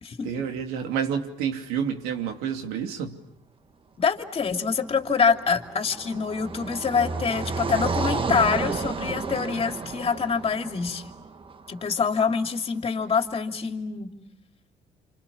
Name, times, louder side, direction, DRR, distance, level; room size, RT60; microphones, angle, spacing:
voice 1, 0.2-3.2, right 7 dB, 90° right, 4 dB, 2.8 m, -29 dB
voice 2, 4.0-11.1 11.7-14.1, left 5 dB, 40° left, 5 dB, 2.9 m, -25 dB
Car passing by, 4.8-12.1, right 4 dB, 35° right, 1.5 m, -32 dB
28.0 x 28.0 x 7.1 m, 0.76 s
supercardioid pair, 80°, 15 cm